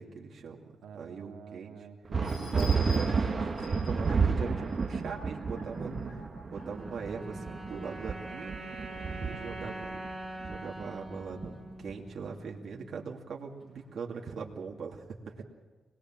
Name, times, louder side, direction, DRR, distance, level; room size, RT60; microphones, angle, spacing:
voice 1, 0.0-0.6 0.9-1.9 2.4-5.9 6.5-8.6 9.2-10.1 10.4-15.2, right 5 dB, 60° right, -1 dB, 2.5 m, -41 dB
voice 2, 0.8-2.6 5.9-6.3, right 6 dB, 85° right, 1 dB, 2.4 m, -47 dB
sound 1, 2.1-6.6 7.1-7.2 7.6-7.7, left 3 dB, 70° left, 5.0 m, -47 dB
sound 2, 2.1-12.1, right 5 dB, 35° right, 1.5 m, -31 dB
sound 3, 6.5-13.0, right 1 dB, 15° right, 5.7 m, -44 dB
25.5 x 20.0 x 7.5 m, 1.3 s
wide cardioid pair, 135°, 0 cm